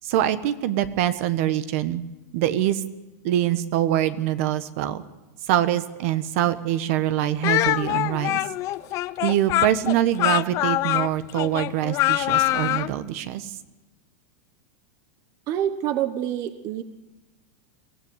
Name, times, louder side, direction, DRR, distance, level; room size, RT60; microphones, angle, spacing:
voice 1, 0.0-2.0 2.3-2.8 3.2-5.0 5.5-8.4 9.2-13.5, right 12 dB, 55° right, 11 dB, 1.4 m, -24 dB
Speech, 7.4-12.9, left 16 dB, 35° left, 0.7 m, -24 dB
voice 2, 15.5-16.8, right 11 dB, 40° right, 10 dB, 1.2 m, -26 dB
23.0 x 15.5 x 8.2 m, 1.1 s
supercardioid pair, 145°, 9 cm